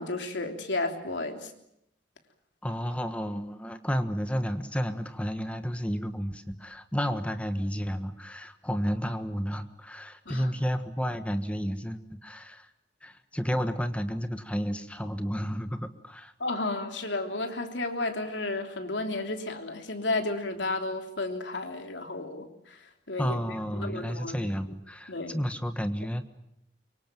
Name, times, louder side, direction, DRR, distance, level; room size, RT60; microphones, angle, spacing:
voice 1, 0.0-1.5 10.2-10.5 16.4-22.5 23.1-23.3 23.8-24.4 25.1-25.4, left 2 dB, 85° left, 5 dB, 3.3 m, -32 dB
voice 2, 2.6-12.7 13.0-16.3 23.2-26.3, equal, 5° left, 8 dB, 1.4 m, -31 dB
24.5 x 23.5 x 9.1 m, 0.79 s
head